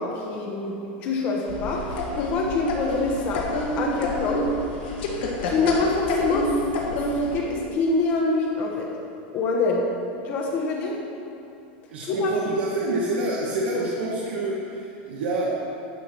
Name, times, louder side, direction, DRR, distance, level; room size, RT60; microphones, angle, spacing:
voice 1, 0.0-4.5 5.4-6.6 6.9-7.1 7.3-8.9 9.3-9.9 10.2-11.0 12.1-12.3, left 3 dB, 35° left, -1 dB, 0.9 m, -25 dB
sound 1, 1.5-7.4, left 1 dB, 70° left, 1.7 m, -28 dB
voice 2, 11.9-15.8, right 2 dB, 80° right, -4 dB, 1.3 m, -27 dB
11.0 x 4.9 x 6.0 m, 2.7 s
supercardioid pair, 165°, 6 cm